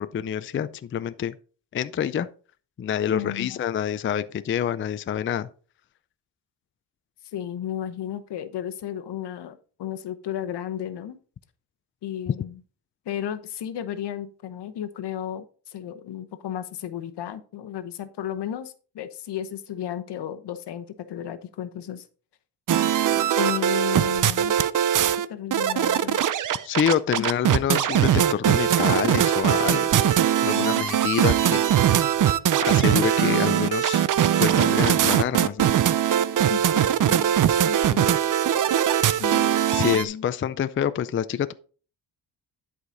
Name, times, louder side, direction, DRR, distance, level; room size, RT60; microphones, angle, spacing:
voice 1, 0.0-1.4 1.7-2.3 2.8-5.5 26.6-30.2 30.4-31.6 32.6-34.1 34.4-35.7 39.3-41.5, left 9 dB, 30° left, 0.4 m, -27 dB
voice 2, 3.1-3.6 7.3-11.2 12.0-12.6 13.1-22.1 23.4-24.5 25.3-26.2 29.7-30.1 30.5-30.9 36.5-38.2 39.2-39.5 39.9-40.3, left 10 dB, 75° left, 1.0 m, -34 dB
sound 1, 22.7-25.3 25.5-40.1, right 10 dB, 50° right, 0.6 m, -21 dB
11.0 x 5.0 x 3.8 m
cardioid pair, 105°, 41 cm